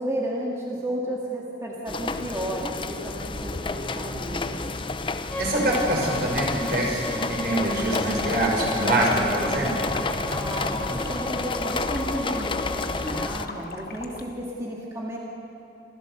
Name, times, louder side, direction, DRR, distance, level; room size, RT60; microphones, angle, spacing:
voice 1, 0.0-4.8 10.3-15.2, right 1 dB, 15° right, -4 dB, 2.0 m, -33 dB
sound 1, 1.9-13.5, left 3 dB, 25° left, 0.7 m, -30 dB
Bowed string instrument, 5.3-13.3, left 2 dB, 10° left, 1.3 m, -36 dB
voice 2, 5.4-9.9, right 1 dB, 55° right, -2 dB, 5.8 m, -25 dB
sound 2, 7.5-14.2, left 3 dB, 50° left, 1.4 m, -38 dB
27.5 x 15.0 x 7.0 m, 3.0 s
head